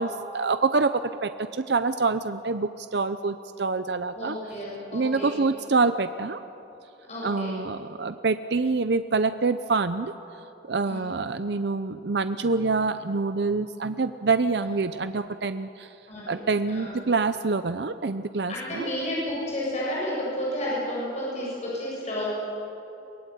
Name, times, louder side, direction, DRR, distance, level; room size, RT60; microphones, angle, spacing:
voice 1, 0.0-4.4 4.9-6.4 7.2-10.1 10.7-15.9 16.3-18.9, right 4 dB, 65° right, 11 dB, 0.6 m, -26 dB
voice 2, 4.1-5.4 7.1-7.6 10.8-11.1 14.6-14.7 16.1-16.4 16.7-16.9 18.5-22.3, left 1 dB, 35° left, -6 dB, 7.5 m, -31 dB
23.0 x 19.5 x 9.3 m, 3.0 s
head